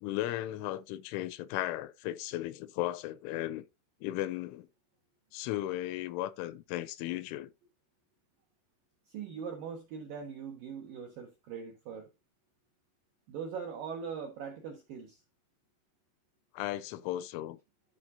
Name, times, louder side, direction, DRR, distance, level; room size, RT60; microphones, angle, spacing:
voice 1, 0.0-3.6 4.0-4.7 5.3-7.5 16.5-17.6, left 14 dB, 85° left, 3.0 m, -36 dB
voice 2, 9.1-12.1 13.3-15.2, right 6 dB, 75° right, 2.0 m, -41 dB
13.5 x 5.0 x 2.7 m
omnidirectional pair, 5.7 m